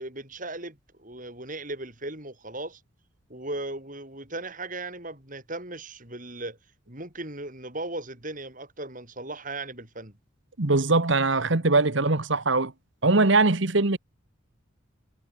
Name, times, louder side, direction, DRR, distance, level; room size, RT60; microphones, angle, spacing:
voice 1, 0.0-2.8 3.3-6.6 6.9-10.2, right 2 dB, 40° right, 7.9 m, -37 dB
voice 2, 10.6-12.7 13.0-14.0, right 3 dB, 60° right, 1.4 m, -21 dB
head